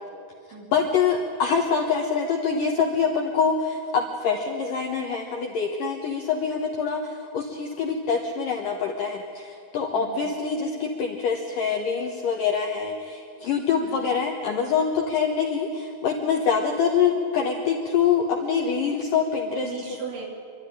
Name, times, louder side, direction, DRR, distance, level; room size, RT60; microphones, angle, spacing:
voice 1, 0.7-19.7, left 6 dB, 70° left, 1 dB, 2.1 m, -25 dB
voice 2, 9.9-10.3 13.8-14.1 19.6-20.3, right 5 dB, 70° right, -1 dB, 5.4 m, -38 dB
26.5 x 12.5 x 10.0 m, 2.3 s
omnidirectional pair, 5.5 m